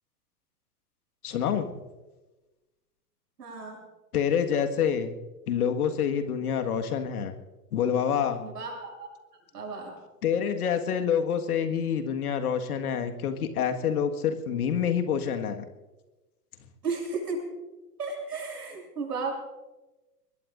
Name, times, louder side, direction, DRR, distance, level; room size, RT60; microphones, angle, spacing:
voice 1, 1.2-1.9 4.1-5.1 5.5-7.3 7.7-8.4 10.2-15.6, left 8 dB, 65° left, 7 dB, 1.9 m, -27 dB
voice 2, 3.4-3.8 8.4-9.1 9.5-10.0 16.8-17.4 18.0-19.3, right 4 dB, 75° right, 0 dB, 7.6 m, -34 dB
24.5 x 21.0 x 2.6 m, 1.1 s
figure-of-eight pair, 105°, 48 cm